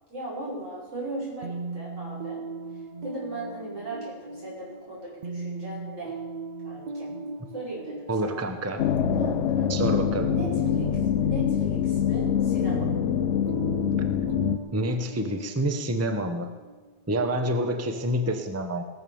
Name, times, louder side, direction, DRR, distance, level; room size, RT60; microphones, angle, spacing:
voice 1, 0.1-2.4 3.0-6.2 6.6-7.1 7.5-8.4 9.2-9.7 10.2-12.9 17.8-18.1, right 2 dB, 80° right, -6 dB, 6.0 m, -38 dB
sound 1, 1.4-17.0, right 3 dB, 50° right, 0.5 m, -38 dB
voice 2, 8.1-8.8 9.7-10.3 14.7-16.5 17.1-18.8, right 1 dB, 15° right, 6 dB, 0.8 m, -27 dB
sound 2, 8.8-14.6, left 9 dB, 70° left, 0.9 m, -25 dB
17.5 x 7.2 x 7.1 m, 1.4 s
omnidirectional pair, 1.3 m